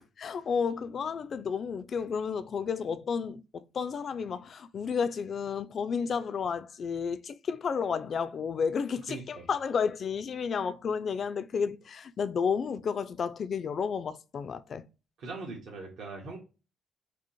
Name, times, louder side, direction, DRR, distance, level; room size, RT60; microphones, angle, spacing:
voice 1, 0.2-14.8, left 6 dB, 55° left, 0.3 m, -32 dB
voice 2, 9.1-9.5 15.2-16.4, right 3 dB, 75° right, 1.1 m, -41 dB
4.9 x 2.0 x 2.9 m
cardioid pair, 90°, 0 cm